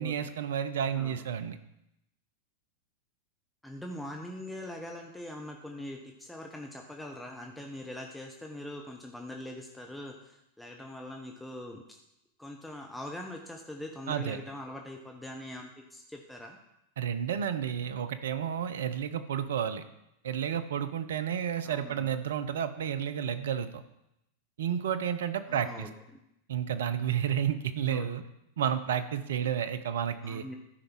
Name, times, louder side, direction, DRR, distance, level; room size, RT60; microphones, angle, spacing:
voice 1, 0.0-1.6 14.1-14.4 17.0-19.8 20.2-23.8 24.6-25.9 26.5-28.2 28.6-30.4, right 9 dB, 60° right, 11 dB, 0.6 m, -31 dB
voice 2, 0.9-1.2 3.6-12.0 12.4-16.6 21.6-22.1 25.5-26.2 27.9-28.1 30.2-30.5, left 1 dB, 5° left, 1 dB, 0.9 m, -42 dB
12.5 x 5.3 x 4.5 m, 0.83 s
figure-of-eight pair, 90°, 0 cm